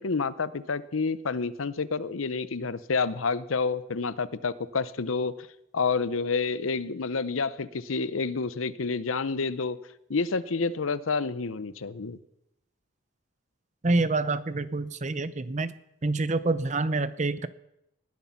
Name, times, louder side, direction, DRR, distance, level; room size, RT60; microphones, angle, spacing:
voice 1, 0.0-5.3 5.7-9.8 10.1-12.2, left 4 dB, 90° left, 16 dB, 0.8 m, -29 dB
voice 2, 13.8-15.7 16.0-17.5, right 3 dB, 35° right, 14 dB, 0.7 m, -27 dB
19.0 x 11.5 x 5.8 m, 0.83 s
head